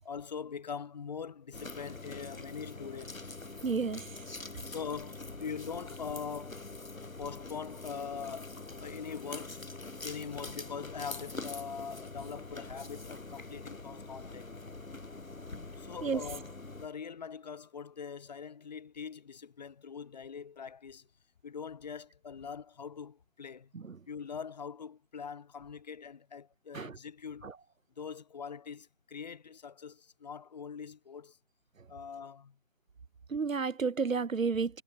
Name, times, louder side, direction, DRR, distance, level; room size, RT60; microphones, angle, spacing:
voice 1, 0.0-3.3 4.6-6.6 7.2-9.6 10.0-14.5 15.8-16.5 16.8-21.1 21.4-23.7 24.1-27.5 28.0-31.4 31.9-32.6, left 6 dB, 30° left, 7.1 m, -42 dB
sound 1, 1.5-16.9, left 3 dB, 85° left, 3.2 m, -44 dB
voice 2, 3.6-4.2 16.0-16.2 23.7-24.0 26.7-27.0 27.4-27.5 33.3-34.8, right 5 dB, 80° right, 1.1 m, -31 dB
figure-of-eight pair, 165°, 39 cm